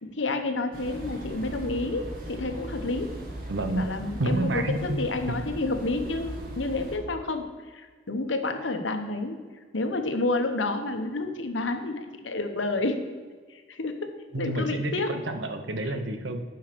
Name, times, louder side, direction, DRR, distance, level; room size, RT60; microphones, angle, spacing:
voice 1, 0.0-3.1 3.7-9.4 9.7-13.0 13.5-15.2 15.8-15.9, left 2 dB, 85° left, 7 dB, 1.1 m, -30 dB
sound 1, 0.7-7.0, right 1 dB, 50° right, 1.9 m, -39 dB
voice 2, 3.5-3.9 4.2-5.0 14.3-16.4, right 1 dB, 75° right, 7 dB, 1.0 m, -29 dB
8.9 x 5.6 x 6.8 m, 1.5 s
head